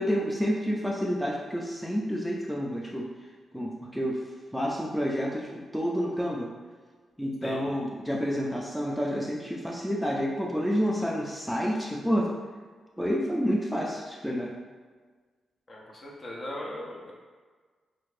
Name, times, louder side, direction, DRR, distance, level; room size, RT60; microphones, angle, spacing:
voice 1, 0.0-3.1 3.5-4.2 4.5-6.5 7.2-12.3 13.0-14.5, equal, ahead, -2 dB, 0.4 m, -29 dB
voice 2, 15.7-17.1, left 1 dB, 45° left, -3 dB, 0.7 m, -38 dB
2.5 x 2.4 x 3.2 m, 1.5 s
cardioid pair, 60°, 0 cm